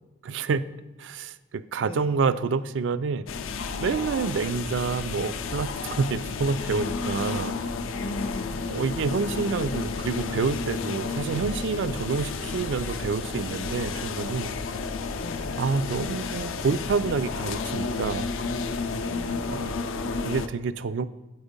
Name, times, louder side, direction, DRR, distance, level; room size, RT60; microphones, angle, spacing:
voice 1, 0.2-0.6 1.0-3.3 3.8-7.5 8.7-14.5 15.6-18.3 19.5-19.8 20.1-21.0, right 4 dB, 65° right, 15 dB, 0.3 m, -28 dB
voice 2, 1.8-2.6 7.9-9.1 15.2-16.4, left 1 dB, 25° left, 11 dB, 0.3 m, -42 dB
sound 1, 3.3-20.5, left 4 dB, 85° left, 0.5 m, -31 dB
8.2 x 4.4 x 5.2 m, 1.1 s
head